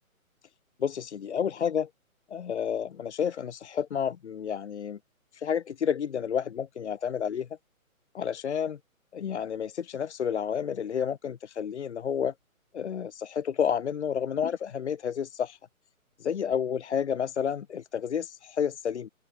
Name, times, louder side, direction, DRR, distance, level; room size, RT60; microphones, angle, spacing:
voice 1, 0.8-1.9 2.3-5.0 5.3-7.5 8.1-8.8 9.1-12.3 12.7-15.6 16.2-19.1, left 8 dB, 50° left, 1.3 m, -30 dB
open air
hypercardioid pair, 160°, 42 cm